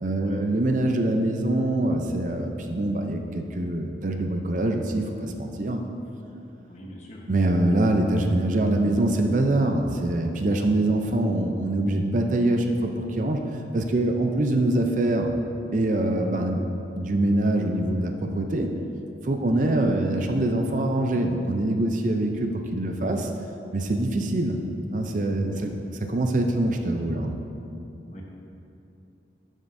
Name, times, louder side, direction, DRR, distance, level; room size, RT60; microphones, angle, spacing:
voice 1, 0.0-5.8 7.3-13.4 13.7-15.3 15.7-16.7 17.0-18.7 19.2-23.3 23.7-24.6 24.9-25.7 26.0-27.4, right 1 dB, 45° right, 4 dB, 0.5 m, -24 dB
voice 2, 6.7-7.2 19.4-19.7 25.5-25.7 28.1-28.2, equal, 40° left, -2 dB, 1.1 m, -42 dB
11.5 x 7.3 x 2.6 m, 2.8 s
head